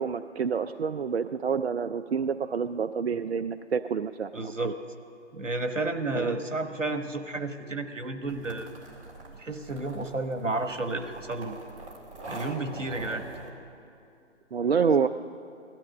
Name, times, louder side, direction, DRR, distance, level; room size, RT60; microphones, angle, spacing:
voice 1, 0.0-4.7 6.1-6.4 14.5-15.1, right 6 dB, 55° right, 11 dB, 0.4 m, -28 dB
voice 2, 4.3-4.7 5.3-8.7 9.4-11.5 12.3-13.2, right 2 dB, 80° right, 7 dB, 1.4 m, -31 dB
sound 1, 8.3-13.5, right 2 dB, 25° right, 2.1 m, -44 dB
17.0 x 13.0 x 6.5 m, 2.5 s
figure-of-eight pair, 140°, 37 cm